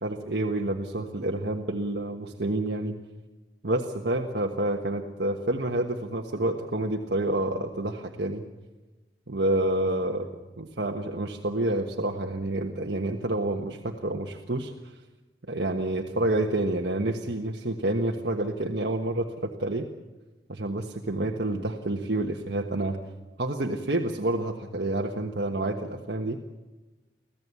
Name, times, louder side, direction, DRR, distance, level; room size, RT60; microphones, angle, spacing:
voice 1, 0.0-3.0 3.6-8.4 9.3-10.2 10.6-14.9 15.5-19.9 20.5-23.0 23.4-26.4, right 1 dB, 65° right, 1 dB, 1.4 m, -28 dB
25.5 x 16.0 x 8.4 m, 1.2 s
head